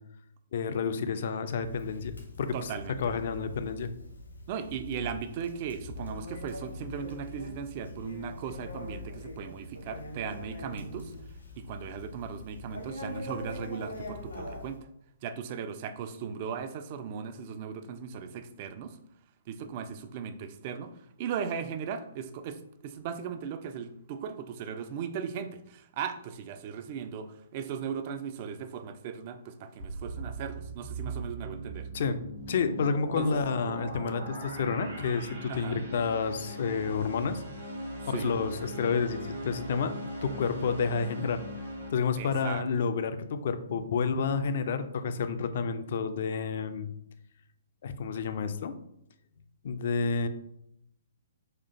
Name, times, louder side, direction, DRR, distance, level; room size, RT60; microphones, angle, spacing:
voice 1, 0.5-2.7 3.0-3.9 31.9-32.2 32.5-37.4 38.1-39.9 40.2-41.4 41.9-46.9 47.8-48.7 49.6-50.3, left 5 dB, 50° left, 10 dB, 0.3 m, -30 dB
Conversation, 1.6-14.8, left 2 dB, 75° left, 0.8 m, -43 dB
voice 2, 2.5-3.1 4.5-11.1 11.6-14.9 15.2-19.0 19.5-31.9 33.1-33.3 35.5-35.9 38.0-38.4 42.2-42.9, right 7 dB, 35° right, 10 dB, 0.3 m, -37 dB
sound 1, 29.8-41.9, right 1 dB, 60° right, 1.0 m, -39 dB
4.3 x 2.4 x 2.6 m, 0.74 s
figure-of-eight pair, 120°, 0 cm